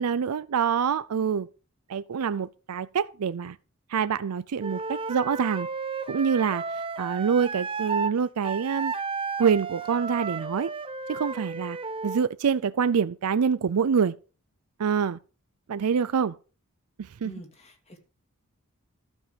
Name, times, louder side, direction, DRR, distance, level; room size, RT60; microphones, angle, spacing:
voice 1, 0.0-1.5 1.9-3.6 3.9-5.7 6.1-8.9 9.4-10.7 11.1-11.8 12.0-14.2 14.8-15.2 15.7-16.3 17.0-17.3, right 6 dB, 90° right, 0.5 m, -26 dB
Wind instrument woodwind instrument, 4.6-8.1 8.4-12.2, right 4 dB, 25° right, 0.7 m, -33 dB
voice 2, 17.2-18.0, equal, 30° left, 2.6 m, -45 dB
12.5 x 7.5 x 5.0 m
head